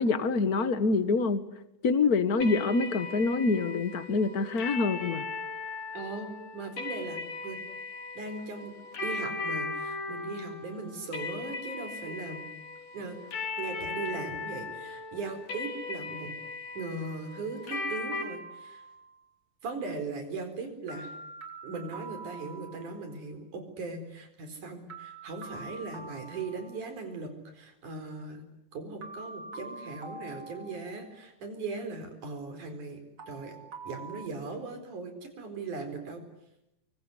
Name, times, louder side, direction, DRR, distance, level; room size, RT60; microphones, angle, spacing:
voice 1, 0.0-1.4 1.8-5.2, left 4 dB, 45° left, 12 dB, 1.2 m, -26 dB
sound 1, 2.4-18.2, left 4 dB, 85° left, 5.7 m, -38 dB
voice 2, 5.9-7.6 8.2-8.7 9.0-12.4 12.9-13.2 13.6-16.4 16.8-18.8 19.6-21.1 21.6-28.4 28.7-33.0 33.3-33.6 33.8-36.2, right 3 dB, 75° right, 7 dB, 5.8 m, -39 dB
sound 2, 18.1-19.3 20.9-23.2 24.9-27.2 29.0-31.4 33.2-34.3, right 3 dB, 35° right, 3.3 m, -45 dB
25.0 x 23.5 x 9.7 m, 0.86 s
omnidirectional pair, 3.6 m